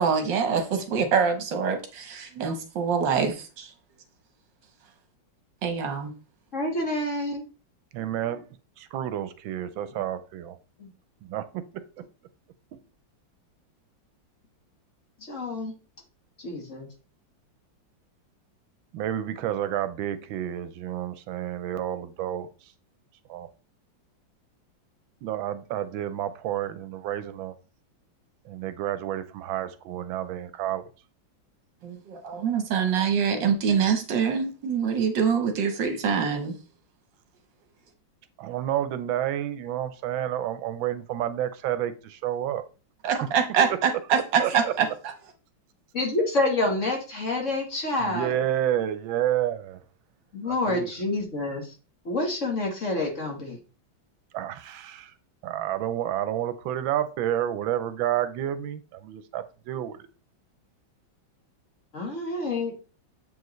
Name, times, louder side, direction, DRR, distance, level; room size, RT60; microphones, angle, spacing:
voice 1, 0.0-3.7 5.6-6.1 31.8-36.6 43.0-44.9, right 6 dB, 70° right, 6 dB, 1.7 m, -25 dB
voice 2, 6.5-7.4 10.8-10.9 15.3-15.7 16.4-16.9 45.9-48.3 50.3-51.8 52.1-53.6 61.9-62.7, left 2 dB, 40° left, 1 dB, 1.7 m, -28 dB
voice 3, 7.9-8.5 8.8-10.6 11.2-11.8 12.7-12.8 18.9-22.7 23.3-23.5 25.2-27.5 28.4-30.9 38.4-42.6 43.7-43.8 44.1-44.7 48.0-49.8 50.4-50.9 54.3-55.2 55.4-60.1, right 11 dB, 85° right, 12 dB, 1.4 m, -30 dB
7.7 x 4.8 x 3.1 m, 0.34 s
omnidirectional pair, 2.1 m